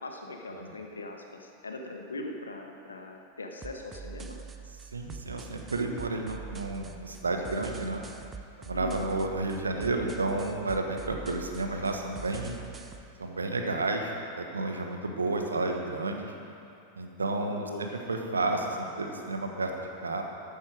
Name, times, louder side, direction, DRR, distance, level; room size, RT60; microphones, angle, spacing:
voice 1, 0.0-4.4 8.7-9.7 17.5-17.9, left 2 dB, 75° left, 3 dB, 1.3 m, -41 dB
sound 1, 3.6-13.0, right 5 dB, 20° right, 0.7 m, -45 dB
voice 2, 4.9-8.0 8.6-12.6 13.2-16.3 17.0-20.2, right 2 dB, 75° right, 3 dB, 1.2 m, -31 dB
13.5 x 11.0 x 4.8 m, 2.6 s
figure-of-eight pair, 90°, 0 cm